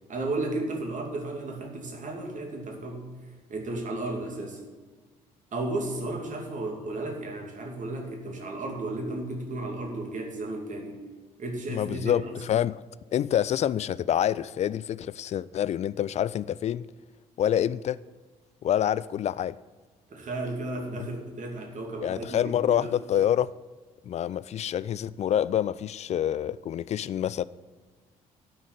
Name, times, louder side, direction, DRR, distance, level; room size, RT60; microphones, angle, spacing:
voice 1, 0.1-3.0 3.5-4.6 5.5-11.1 11.4-12.2 20.1-22.9, right 2 dB, 40° right, 2.6 m, -34 dB
voice 2, 11.7-12.8 13.1-16.9 17.4-18.0 18.6-19.6 21.0-21.1 22.0-23.5 24.1-27.4, left 10 dB, 35° left, 0.4 m, -27 dB
11.5 x 6.4 x 8.8 m
figure-of-eight pair, 45°, 19 cm